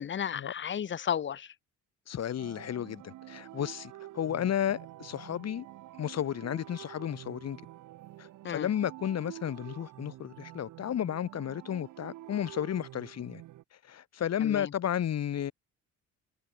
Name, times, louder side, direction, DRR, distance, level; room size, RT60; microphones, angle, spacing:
voice 1, 0.0-1.5 8.4-8.7 14.4-14.7, left 8 dB, 40° left, 0.8 m, -33 dB
voice 2, 2.1-5.7 6.0-7.6 8.2-13.4 13.8-15.5, left 10 dB, 55° left, 1.8 m, -33 dB
sound 1, 2.4-13.6, right 15 dB, 80° right, 1.2 m, -48 dB
cardioid pair, 90°, 30 cm